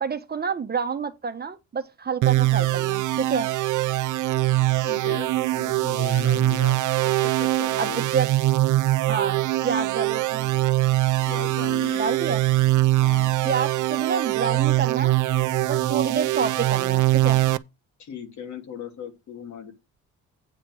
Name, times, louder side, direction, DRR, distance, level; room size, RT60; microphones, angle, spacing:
voice 1, 0.0-3.5 7.8-8.3 9.1-10.5 11.9-12.4 13.4-15.1 15.7-17.4, right 5 dB, 30° right, 1.0 m, -28 dB
sound 1, 2.2-17.6, right 16 dB, 80° right, 0.6 m, -22 dB
voice 2, 4.8-8.1 11.3-12.1 13.0-13.3 18.0-19.7, left 7 dB, 65° left, 2.8 m, -38 dB
8.8 x 4.4 x 6.3 m
cardioid pair, 90°, 30 cm